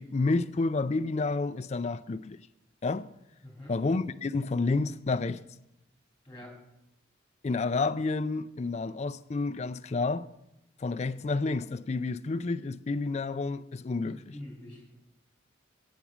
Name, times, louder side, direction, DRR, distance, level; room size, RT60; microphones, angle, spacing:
voice 1, 0.0-2.4 2.8-3.1 3.7-5.4 7.4-10.3 10.8-14.3, left 3 dB, 35° left, 0.4 m, -30 dB
voice 2, 3.4-3.8 6.2-6.6 14.0-14.9, left 1 dB, 5° left, 2.8 m, -45 dB
8.7 x 8.1 x 6.0 m
head